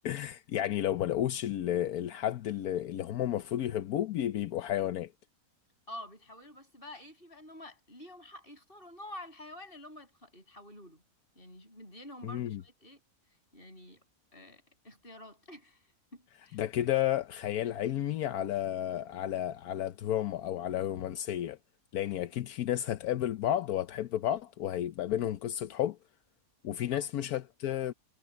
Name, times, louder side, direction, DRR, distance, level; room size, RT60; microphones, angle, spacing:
voice 1, 0.0-5.1 12.2-12.6 16.5-21.6 21.9-26.0 26.6-27.9, left 11 dB, 85° left, 1.2 m, -32 dB
voice 2, 5.9-11.0 11.4-13.0 13.5-14.0 14.3-15.8 16.1-16.6 26.9-27.1, left 1 dB, 35° left, 7.6 m, -48 dB
omnidirectional pair, 1.5 m